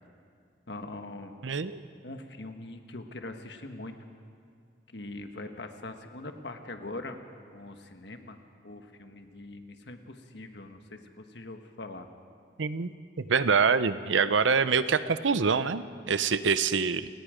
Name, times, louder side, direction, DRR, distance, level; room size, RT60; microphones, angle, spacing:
voice 1, 0.7-1.4 2.0-4.0 4.9-7.2 7.5-8.4 8.6-12.1, left 2 dB, 65° left, 6 dB, 1.4 m, -42 dB
voice 2, 1.4-1.8 12.6-12.9 13.3-17.1, right 5 dB, 85° right, 13 dB, 0.7 m, -25 dB
29.5 x 18.0 x 5.1 m, 2.3 s
head